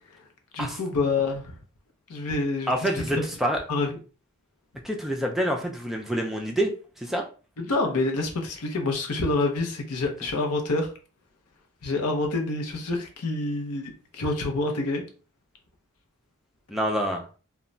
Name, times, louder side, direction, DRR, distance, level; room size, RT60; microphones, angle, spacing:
voice 1, 0.5-1.5 2.1-3.2 3.7-4.0 7.6-10.9 11.8-15.0, left 2 dB, 75° left, 3 dB, 0.6 m, -27 dB
voice 2, 2.7-3.6 4.8-6.7 7.0-7.2 16.7-17.4, equal, ahead, 1 dB, 0.3 m, -27 dB
2.2 x 2.1 x 3.7 m, 0.36 s
head